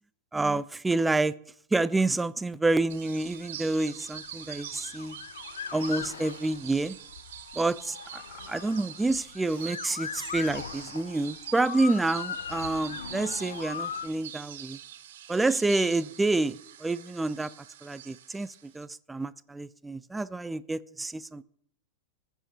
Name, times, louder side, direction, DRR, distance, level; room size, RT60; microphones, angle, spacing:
voice 1, 0.3-1.3 1.7-5.2 5.7-7.0 7.5-8.2 8.5-14.8 15.3-17.5 17.8-21.4, right 2 dB, 10° right, 0.3 m, -28 dB
Motor vehicle (road) / Siren, 2.9-14.1, left 7 dB, 65° left, 0.4 m, -40 dB
sound 1, 2.9-18.8, right 11 dB, 55° right, 0.8 m, -45 dB
15.0 x 5.5 x 2.9 m
figure-of-eight pair, 90°, 0 cm